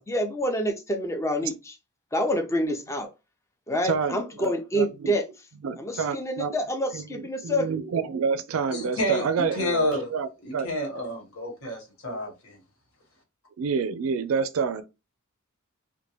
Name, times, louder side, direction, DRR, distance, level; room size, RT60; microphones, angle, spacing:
voice 1, 0.0-1.8 2.1-3.1 3.7-5.2 5.8-7.6, equal, 15° left, 0.5 m, -27 dB
voice 2, 3.8-5.1 5.6-6.6 6.9-10.7 13.6-14.9, right 5 dB, 75° right, 0.4 m, -28 dB
voice 3, 8.7-10.1 10.4-12.6, left 1 dB, 70° left, 1.3 m, -29 dB
3.0 x 2.1 x 2.9 m
head